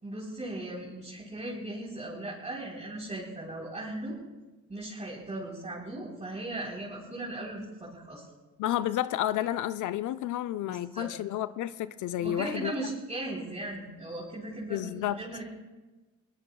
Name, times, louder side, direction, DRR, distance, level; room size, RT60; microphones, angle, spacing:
voice 1, 0.0-4.2 4.7-8.2 10.7-11.1 12.2-15.6, right 1 dB, 20° right, -6 dB, 3.7 m, -38 dB
voice 2, 8.6-12.7 14.7-15.2, left 12 dB, 80° left, 12 dB, 0.5 m, -31 dB
22.0 x 18.5 x 2.3 m, 1.2 s
cardioid pair, 90°, 30 cm